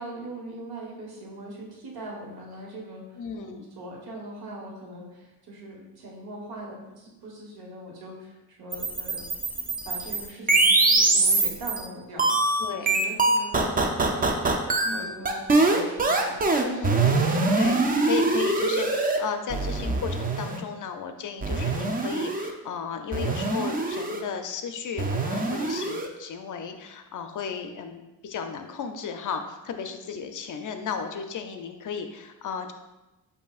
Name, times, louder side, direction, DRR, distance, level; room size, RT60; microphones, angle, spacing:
voice 1, 0.0-9.2 9.5-16.4, right 1 dB, 70° right, -2 dB, 1.4 m, -41 dB
voice 2, 3.2-3.6 12.6-12.9 14.8-15.2 16.7-17.2 17.6-32.7, left 6 dB, 50° left, 6 dB, 0.5 m, -34 dB
sound 1, 8.7-11.8 12.2-19.2 19.5-20.6 21.4-22.5 23.1-24.2 25.0-26.1, right 3 dB, 20° right, 0.5 m, -23 dB
8.0 x 2.7 x 2.4 m, 1.0 s
cardioid pair, 85°, 39 cm